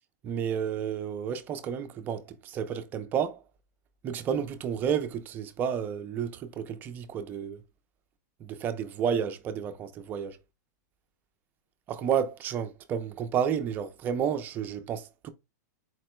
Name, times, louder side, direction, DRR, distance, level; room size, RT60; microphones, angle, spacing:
voice 1, 0.2-3.4 4.0-7.6 8.4-10.4 11.9-15.3, right 8 dB, 20° right, 0.4 m, -31 dB
4.3 x 2.1 x 4.3 m
supercardioid pair, 160°, 10 cm